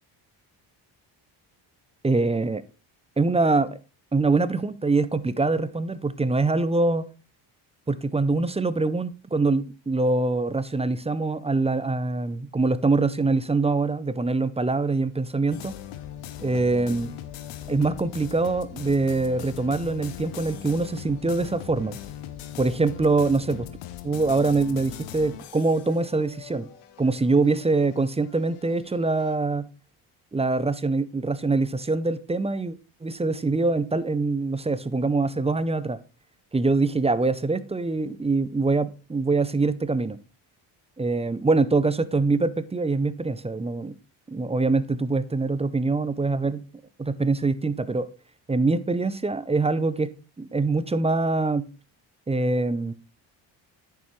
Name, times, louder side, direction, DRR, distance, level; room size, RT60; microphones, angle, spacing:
voice 1, 2.0-2.6 3.2-3.7 4.1-7.1 7.9-15.7 16.4-17.1 17.7-22.0 22.6-23.7 24.0-26.7 27.0-29.7 30.3-32.7 33.0-36.0 36.5-40.2 41.0-43.9 44.3-46.6 47.0-48.1 48.5-50.1 50.4-51.7 52.3-52.9, right 3 dB, 15° right, 0.5 m, -24 dB
sound 1, 15.5-29.4, left 11 dB, 85° left, 0.9 m, -40 dB
9.0 x 6.7 x 3.1 m
supercardioid pair, 70°, 50 cm